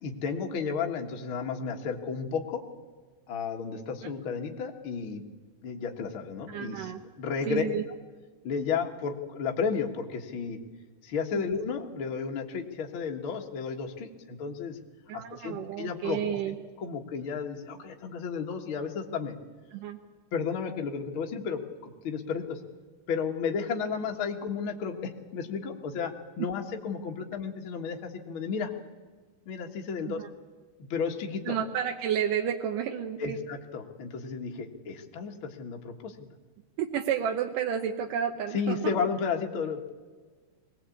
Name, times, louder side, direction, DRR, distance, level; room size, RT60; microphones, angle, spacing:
voice 1, 0.0-2.6 3.3-5.2 5.6-6.9 7.2-7.6 8.4-10.6 11.0-14.8 15.1-16.4 16.8-19.3 20.3-22.6 23.1-28.7 29.4-30.2 30.9-31.6 33.2-36.3 38.5-39.9, left 6 dB, 70° left, 2 dB, 1.2 m, -33 dB
voice 2, 6.5-7.0 7.5-7.8 11.3-11.4 15.1-16.6 19.7-20.0 30.1-30.3 31.5-33.4 36.8-38.9, right 9 dB, 75° right, 4 dB, 2.0 m, -31 dB
22.5 x 18.0 x 8.5 m, 1.4 s
omnidirectional pair, 4.9 m